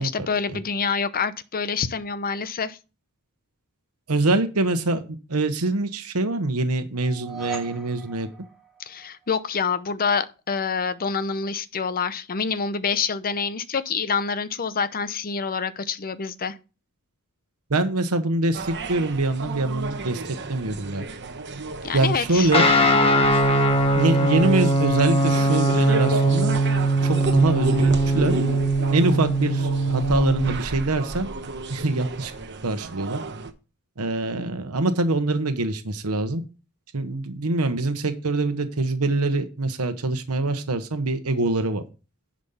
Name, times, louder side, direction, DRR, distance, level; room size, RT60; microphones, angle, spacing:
voice 1, 0.0-2.8 8.9-16.6 21.8-22.5, left 5 dB, 40° left, 0.7 m, -27 dB
voice 2, 4.1-5.0 5.3-8.3 17.7-20.2 20.5-21.1 21.9-22.7 23.9-26.6 27.0-28.3 28.9-31.3 31.7-32.3 32.6-33.2 34.0-36.4 36.9-41.8, right 2 dB, 80° right, 1.1 m, -24 dB
sound 1, 6.9-9.2, right 6 dB, ahead, 2.5 m, -39 dB
sound 2, 18.5-33.5, right 3 dB, 55° right, 1.1 m, -33 dB
Guitar, 22.5-30.6, right 1 dB, 25° left, 1.4 m, -21 dB
10.5 x 5.1 x 5.7 m
head